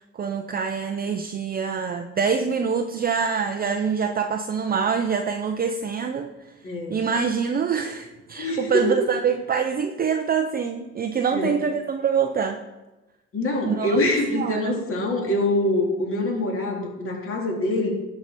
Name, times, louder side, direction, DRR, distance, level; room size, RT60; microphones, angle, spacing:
voice 1, 0.0-6.3 6.9-12.6 13.6-14.0 14.3-14.8, right 6 dB, 30° right, 5 dB, 0.5 m, -25 dB
voice 2, 6.6-7.0 8.4-9.0 11.3-11.6 13.3-17.9, left 1 dB, 45° left, 0 dB, 2.3 m, -24 dB
11.5 x 4.8 x 4.2 m, 1.1 s
supercardioid pair, 85°, 31 cm